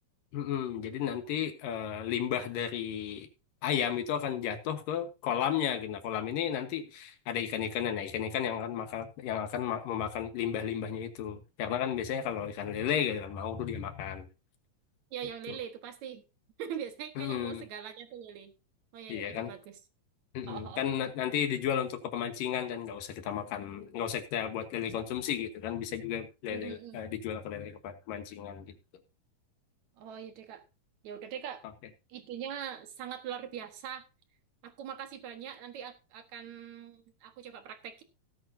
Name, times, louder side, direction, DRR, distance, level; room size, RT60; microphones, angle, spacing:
voice 1, 0.3-3.3 3.6-14.3 15.5-15.6 17.2-17.6 19.1-19.5 20.3-28.7, left 9 dB, 70° left, 3.0 m, -33 dB
voice 2, 15.1-16.2 16.6-18.5 18.9-19.8 20.5-20.8 26.5-27.0 30.0-30.6 31.0-31.6 32.1-34.1 34.6-38.0, right 9 dB, 60° right, 2.5 m, -42 dB
17.5 x 8.7 x 2.7 m
omnidirectional pair, 4.2 m